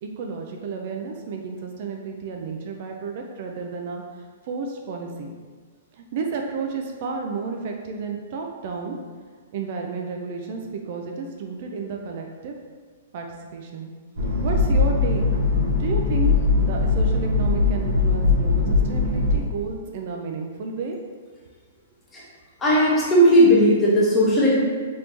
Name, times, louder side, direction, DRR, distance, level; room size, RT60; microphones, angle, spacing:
voice 1, 0.0-5.3 5.9-9.0 9.5-12.6 13.1-13.3 13.5-13.9 14.4-15.4 15.8-16.3 16.6-21.0, right 4 dB, 50° right, 2 dB, 0.3 m, -32 dB
sound 1, 14.2-19.4, left 3 dB, 65° right, 1.1 m, -20 dB
voice 2, 22.6-24.6, equal, 15° left, -6 dB, 0.8 m, -16 dB
3.0 x 2.6 x 3.4 m, 1.5 s
hypercardioid pair, 150°, 0 cm